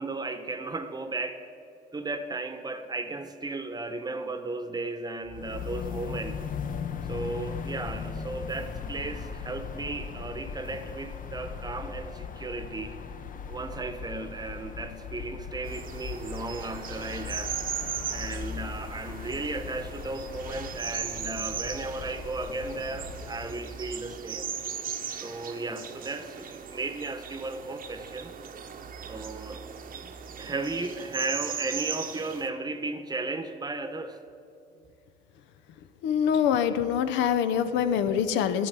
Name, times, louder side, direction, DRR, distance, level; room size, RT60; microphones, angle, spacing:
voice 1, 0.0-1.4 1.9-6.5 7.1-12.9 13.5-17.5 18.1-24.5 25.1-28.3 29.1-29.6 30.0-30.1 30.4-34.2, right 3 dB, 20° right, 9 dB, 0.9 m, -35 dB
sound 1, 5.3-23.6, left 6 dB, 45° left, 0.7 m, -38 dB
sound 2, 15.6-32.5, right 7 dB, 50° right, 0.8 m, -38 dB
voice 2, 36.0-38.7, left 8 dB, 85° left, 10 dB, 0.6 m, -25 dB
11.0 x 4.7 x 8.1 m, 2.6 s
supercardioid pair, 80°, 18 cm